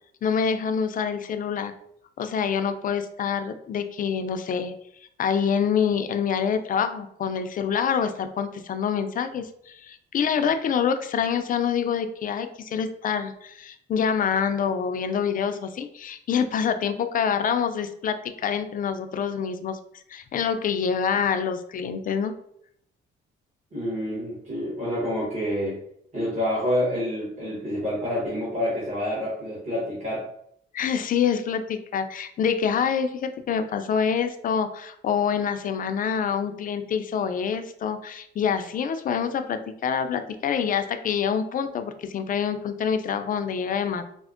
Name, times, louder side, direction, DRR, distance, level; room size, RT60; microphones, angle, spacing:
voice 1, 0.2-1.7 2.2-4.7 5.2-19.8 20.1-22.3 30.7-44.0, left 7 dB, 45° left, 8 dB, 0.4 m, -26 dB
voice 2, 23.7-25.8 26.1-30.2, equal, 35° right, -7 dB, 1.2 m, -28 dB
4.3 x 2.0 x 2.4 m, 0.71 s
cardioid pair, 90°, 20 cm